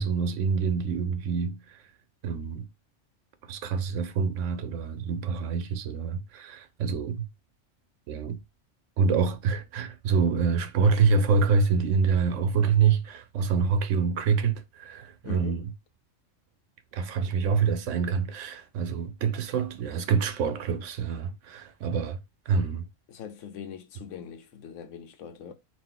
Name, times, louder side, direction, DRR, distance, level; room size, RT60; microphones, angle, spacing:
voice 1, 0.0-1.8 2.2-2.7 3.5-7.2 8.1-8.4 9.0-15.7 16.9-22.2 22.5-22.9, right 5 dB, 85° right, 1.0 m, -26 dB
voice 2, 15.2-15.6 23.1-25.5, left 8 dB, 85° left, 1.0 m, -41 dB
4.1 x 2.4 x 3.7 m
omnidirectional pair, 1.2 m